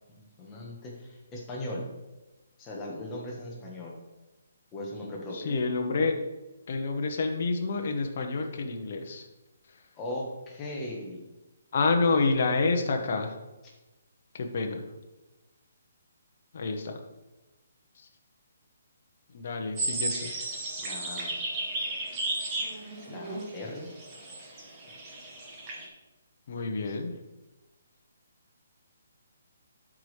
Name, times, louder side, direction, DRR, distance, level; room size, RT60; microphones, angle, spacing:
voice 1, 0.2-1.9 2.6-4.0 4.7-5.5 9.9-11.2 20.8-21.4 23.1-23.9 26.9-27.0, left 1 dB, 10° left, -2 dB, 1.1 m, -38 dB
voice 2, 5.3-6.1 6.7-9.3 9.7-9.8 11.7-13.4 14.3-14.8 16.5-16.9 18.0-18.1 19.3-20.3 26.5-27.1, left 3 dB, 35° left, 3 dB, 0.9 m, -28 dB
sound 1, 19.8-25.9, right 2 dB, 15° right, 1.0 m, -34 dB
11.0 x 4.9 x 3.2 m, 1.1 s
hypercardioid pair, 175°, 0 cm